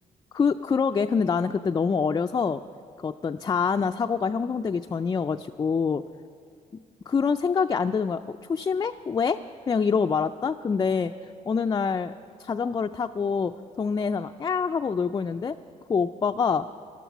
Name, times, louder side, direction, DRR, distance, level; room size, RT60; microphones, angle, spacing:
voice 1, 0.3-2.6 3.0-6.0 7.1-9.4 9.7-11.1 11.5-12.1 12.4-15.5 15.9-16.7, left 5 dB, 25° left, 6 dB, 0.4 m, -25 dB
13.5 x 12.0 x 7.0 m, 2.2 s
cardioid pair, 85°, 15 cm